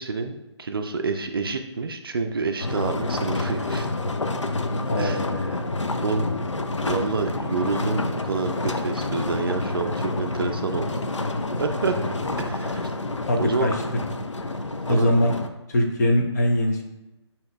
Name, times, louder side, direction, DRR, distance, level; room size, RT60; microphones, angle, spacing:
voice 1, 0.0-3.9 5.0-5.2 5.5-5.7 6.0-6.3 6.8-11.0 11.6-12.9 13.4-13.7 14.9-15.1, right 4 dB, 50° right, 6 dB, 0.4 m, -28 dB
sound 1, 2.6-15.5, left 2 dB, 90° left, 0.4 m, -28 dB
voice 2, 4.9-5.9 11.8-12.0 12.6-12.7 13.3-13.7 14.9-15.3 15.7-16.8, left 1 dB, 35° left, 2 dB, 0.6 m, -23 dB
8.4 x 2.8 x 2.2 m, 0.97 s
figure-of-eight pair, 145°, 15 cm